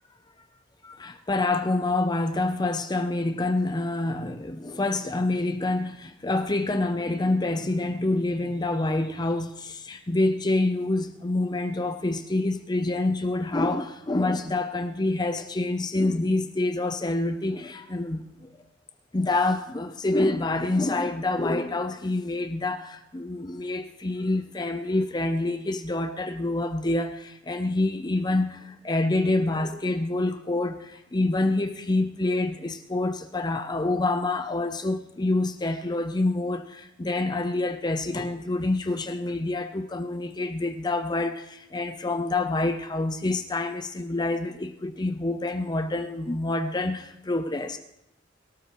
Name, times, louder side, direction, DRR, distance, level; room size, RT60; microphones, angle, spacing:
voice 1, 0.8-18.5 19.1-47.8, left 2 dB, 20° left, 0.6 m, -27 dB
23.0 x 13.0 x 3.0 m
head